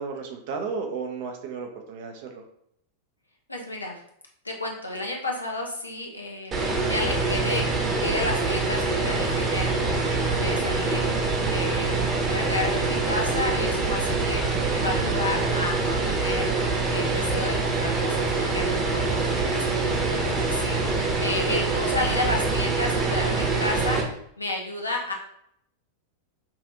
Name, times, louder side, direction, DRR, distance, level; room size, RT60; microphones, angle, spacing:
voice 1, 0.0-2.4, right 5 dB, 50° right, 4 dB, 0.7 m, -33 dB
voice 2, 3.5-3.9 4.4-6.5 6.8-7.7 8.0-11.1 11.5-12.0 12.2-16.5 16.9-24.0 24.4-25.1, left 2 dB, 85° left, -1 dB, 0.8 m, -31 dB
sound 1, 6.5-24.0, right 3 dB, 25° right, 1.0 m, -25 dB
5.6 x 2.5 x 2.7 m, 0.72 s
figure-of-eight pair, 90°, 0 cm